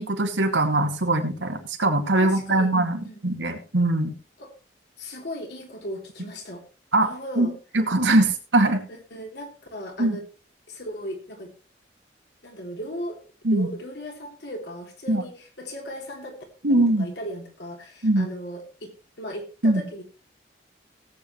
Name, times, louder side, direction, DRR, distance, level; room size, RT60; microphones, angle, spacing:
voice 1, 0.0-4.1 6.9-7.1 7.4-8.8 10.0-10.2 13.4-13.7 15.1-15.2 16.6-17.1 18.0-18.3 19.6-19.8, right 2 dB, 90° right, 4 dB, 2.3 m, -22 dB
voice 2, 2.2-2.7 3.0-3.2 4.4-4.5 5.0-6.6 7.0-7.5 8.2-8.3 8.9-10.2 10.7-11.5 12.4-13.2 13.5-16.4 16.7-18.9 19.2-20.0, equal, 65° left, 2 dB, 3.6 m, -37 dB
18.5 x 8.4 x 3.2 m, 0.33 s
head